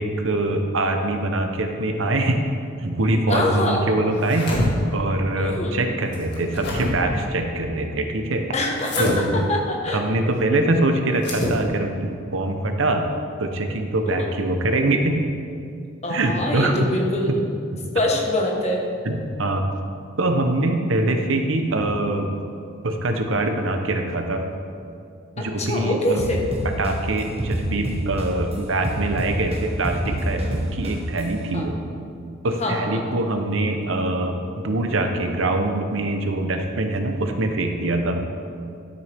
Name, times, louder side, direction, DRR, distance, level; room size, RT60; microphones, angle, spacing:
voice 1, 0.0-2.4 2.8-4.5 4.9-8.5 9.0-9.5 9.9-13.1 13.4-15.2 16.1-16.7 19.0-19.7 20.2-22.3 22.8-24.4 25.4-26.3 26.8-31.8 32.4-34.4 34.6-38.2, right 2 dB, 85° right, 5 dB, 0.9 m, -23 dB
voice 2, 3.3-3.8 5.4-5.8 8.5-10.0 14.1-14.3 16.0-17.4 17.9-18.8 25.4-26.5 31.5-31.7 32.6-33.0, left 1 dB, 35° left, 0 dB, 1.3 m, -24 dB
sound 1, 4.1-4.7 6.1-6.9 8.8-9.2 11.1-11.6, left 1 dB, 60° left, 2.1 m, -26 dB
sound 2, 26.2-28.5 28.8-31.2, right 1 dB, 30° right, 1.2 m, -27 dB
12.0 x 6.9 x 3.5 m, 2.4 s
head